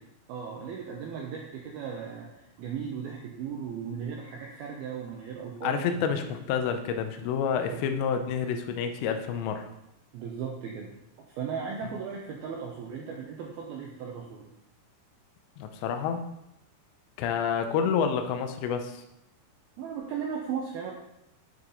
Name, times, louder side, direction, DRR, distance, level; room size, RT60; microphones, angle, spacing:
voice 1, 0.3-6.1 7.7-7.8 10.1-10.9 11.2-14.5 19.8-20.9, right 7 dB, 75° right, -1 dB, 2.3 m, -36 dB
voice 2, 5.6-9.7 15.6-16.3 17.2-19.0, left 7 dB, 80° left, 6 dB, 2.8 m, -29 dB
10.5 x 5.9 x 3.9 m, 0.84 s
omnidirectional pair, 5.4 m